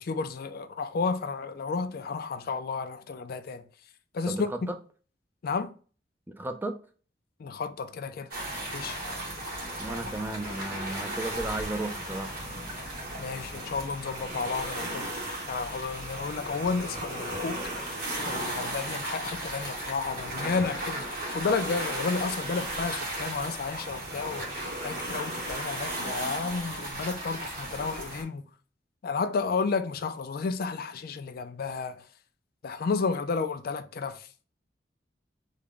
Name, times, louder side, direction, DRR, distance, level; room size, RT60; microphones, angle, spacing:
voice 1, 0.0-3.7 4.1-4.7 5.4-5.7 7.4-8.3 8.7-9.0 13.2-15.1 15.5-24.5 24.8-28.5 29.0-32.0 32.6-34.3, left 4 dB, 55° left, 0.4 m, -32 dB
voice 2, 6.3-6.7 9.8-12.4, right 2 dB, 10° right, 0.4 m, -34 dB
sound 1, 8.3-28.2, right 1 dB, 55° right, 1.4 m, -35 dB
3.5 x 2.2 x 3.6 m
head